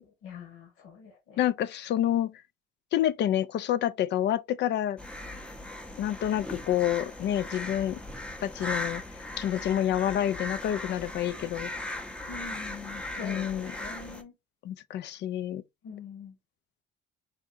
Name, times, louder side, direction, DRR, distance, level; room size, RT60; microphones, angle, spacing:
voice 1, 0.2-1.5 12.3-14.3 15.8-16.4, left 6 dB, 80° left, 1.2 m, -44 dB
voice 2, 1.4-2.3 2.9-5.0 6.0-8.0 8.4-9.0 9.4-11.7 13.2-13.7 14.6-15.6, left 11 dB, 55° left, 0.4 m, -28 dB
sound 1, 5.0-14.2, left 1 dB, 5° left, 0.6 m, -38 dB
3.6 x 2.8 x 2.5 m
supercardioid pair, 70°, 21 cm